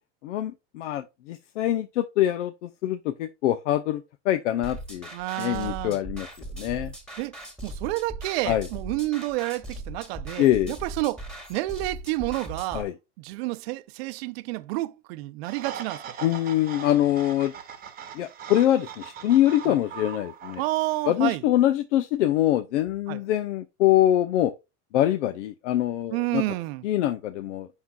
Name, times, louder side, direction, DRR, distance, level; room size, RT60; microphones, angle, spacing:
voice 1, 0.2-5.1 5.4-6.3 6.6-6.9 8.5-8.7 10.4-10.7 12.7-12.9 16.2-17.5 18.1-20.6 21.1-24.5 24.9-26.4 26.8-27.7, left 13 dB, 85° left, 0.7 m, -24 dB
sound 1, 4.6-12.8, right 2 dB, ahead, 1.9 m, -39 dB
voice 2, 5.1-6.0 7.2-7.3 7.6-11.2 11.5-12.9 13.2-16.0 19.6-19.8 20.6-21.4 23.1-23.2 26.1-26.8, right 19 dB, 60° right, 0.6 m, -29 dB
sound 2, 15.4-21.1, right 8 dB, 25° right, 1.1 m, -40 dB
8.2 x 5.8 x 2.3 m
supercardioid pair, 140°, 35 cm